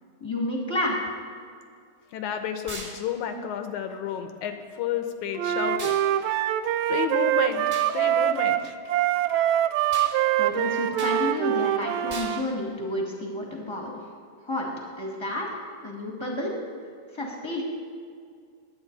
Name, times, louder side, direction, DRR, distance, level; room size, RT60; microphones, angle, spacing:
voice 1, 0.2-1.0 10.4-14.0 14.4-15.5 15.8-16.5 17.1-17.6, left 1 dB, 10° left, -2 dB, 1.3 m, -30 dB
voice 2, 2.1-6.0 6.9-7.6 7.9-8.7, left 8 dB, 75° left, 7 dB, 2.1 m, -31 dB
sound 1, 2.7-3.0 5.8-6.0 7.7-7.9 9.9-10.1 11.0-11.2 12.1-12.4, right 2 dB, 25° right, 2.1 m, -37 dB
Wind instrument woodwind instrument, 5.4-12.4, right 11 dB, 85° right, 1.6 m, -24 dB
20.5 x 8.8 x 4.0 m, 2.2 s
omnidirectional pair, 3.7 m